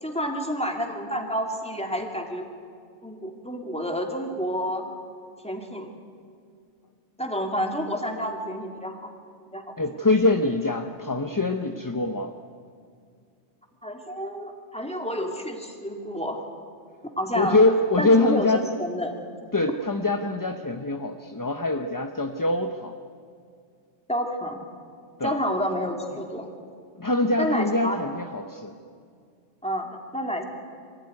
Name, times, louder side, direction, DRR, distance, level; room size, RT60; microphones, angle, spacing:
voice 1, 0.0-2.5 3.0-4.8 5.4-5.9 7.2-9.1 9.5-9.7 13.8-16.4 17.2-17.6 18.0-19.2 24.1-24.6 25.2-26.5 27.4-28.1 29.6-30.4, equal, 5° left, 3 dB, 2.2 m, -29 dB
voice 2, 9.8-12.3 17.3-18.6 19.5-23.0 25.2-25.4 27.0-28.7, left 2 dB, 20° left, 5 dB, 0.6 m, -24 dB
24.5 x 16.0 x 9.6 m, 2.2 s
omnidirectional pair, 1.2 m